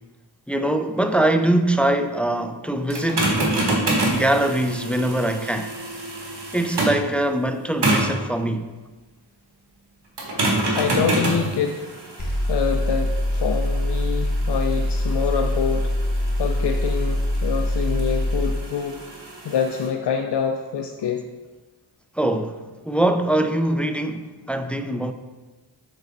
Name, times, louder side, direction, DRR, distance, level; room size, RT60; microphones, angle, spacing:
voice 1, 0.5-3.4 4.1-5.7 6.5-8.7 22.2-22.6 22.9-25.1, right 1 dB, 5° left, 0.3 m, -22 dB
sound 1, 2.9-7.1 7.8-8.2 10.2-19.9, right 2 dB, 60° right, 1.6 m, -27 dB
voice 2, 10.3-11.8 12.2-16.0 16.4-19.0 19.4-21.3, left 7 dB, 60° left, 0.5 m, -26 dB
sound 2, 12.2-18.6, left 1 dB, 40° left, 1.4 m, -23 dB
6.1 x 3.9 x 4.0 m
cardioid pair, 45°, 46 cm